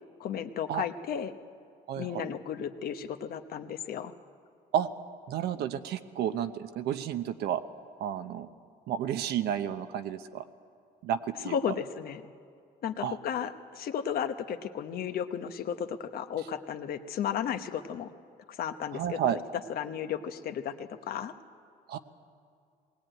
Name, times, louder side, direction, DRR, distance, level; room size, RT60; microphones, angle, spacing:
voice 1, 0.2-1.3 2.0-4.1 11.4-12.2 12.8-18.1 18.5-19.4 19.7-21.3, left 8 dB, 60° left, 9 dB, 1.1 m, -34 dB
voice 2, 1.9-2.3 4.7-4.9 5.3-7.6 8.0-8.5 8.9-10.4 11.0-11.6 13.0-13.2 18.9-19.4 21.9-22.0, right 10 dB, 75° right, 10 dB, 1.0 m, -31 dB
20.5 x 17.5 x 9.1 m, 2.4 s
cardioid pair, 110°, 17 cm